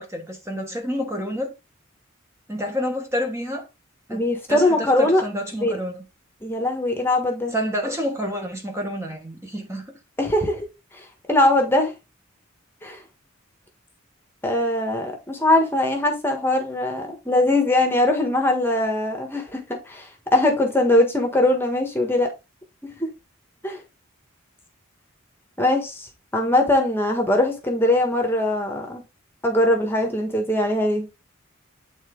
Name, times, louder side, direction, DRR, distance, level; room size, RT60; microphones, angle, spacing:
voice 1, 0.0-1.5 2.5-3.6 4.1-4.2 4.5-6.0 7.5-10.0, equal, 15° right, 1.4 m, -28 dB
voice 2, 4.1-5.2 5.6-5.8 6.4-7.5 10.2-10.7 11.3-11.9 12.8-13.0 14.4-22.3 22.8-23.1 23.6-23.8 25.6-26.1 26.3-29.0 29.4-31.1, left 1 dB, 10° left, 1.4 m, -21 dB
9.1 x 4.0 x 3.8 m
head